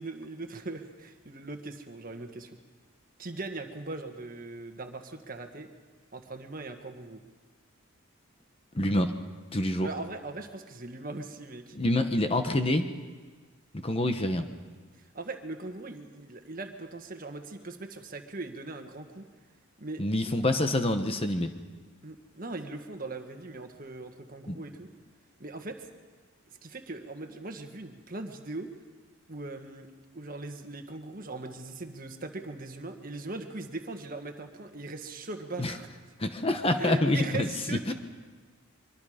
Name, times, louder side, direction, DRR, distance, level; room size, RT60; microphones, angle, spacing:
voice 1, 0.0-2.6 3.2-5.7 6.1-7.2 9.8-11.8 15.0-19.3 19.8-20.0 22.0-24.9 25.4-25.9 26.5-28.7 29.3-29.9 30.1-35.9 36.8-37.9, right 2 dB, 40° right, 6 dB, 1.5 m, -40 dB
voice 2, 8.7-9.1 9.5-9.9 11.7-12.9 13.8-14.5 20.0-21.5 24.5-24.6 35.6-35.7 36.2-37.9, left 1 dB, 25° left, 7 dB, 1.0 m, -27 dB
24.0 x 23.5 x 5.1 m, 1.4 s
head